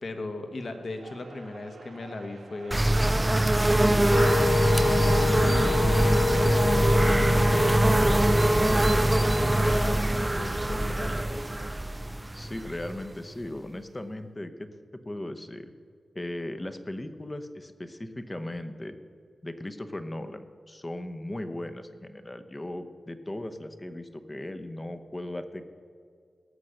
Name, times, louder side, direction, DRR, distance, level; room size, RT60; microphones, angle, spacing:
voice 1, 0.0-2.9 3.5-11.3, left 2 dB, 50° left, 6 dB, 1.2 m, -38 dB
sound 1, 0.6-11.6, right 3 dB, 65° right, 1.0 m, -50 dB
sound 2, 2.7-13.3, right 1 dB, 15° right, 0.3 m, -23 dB
Wind instrument woodwind instrument, 4.1-9.9, left 5 dB, 85° left, 0.4 m, -30 dB
voice 2, 12.3-14.7 15.0-15.7 16.1-19.0 19.4-25.7, left 1 dB, 20° left, 9 dB, 0.8 m, -37 dB
17.5 x 6.6 x 6.5 m, 2.1 s
wide cardioid pair, 100°, 0 cm